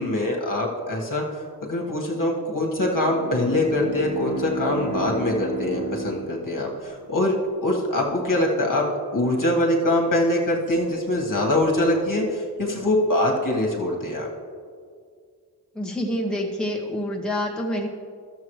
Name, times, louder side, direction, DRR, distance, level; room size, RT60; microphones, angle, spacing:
voice 1, 0.0-8.8 9.1-14.3, left 1 dB, 50° left, -1 dB, 1.6 m, -23 dB
Bowed string instrument, 2.8-7.1, right 2 dB, 50° right, 2.2 m, -32 dB
voice 2, 15.7-17.9, equal, ahead, -2 dB, 1.2 m, -27 dB
12.0 x 7.2 x 3.1 m, 2.1 s
cardioid pair, 40°, 40 cm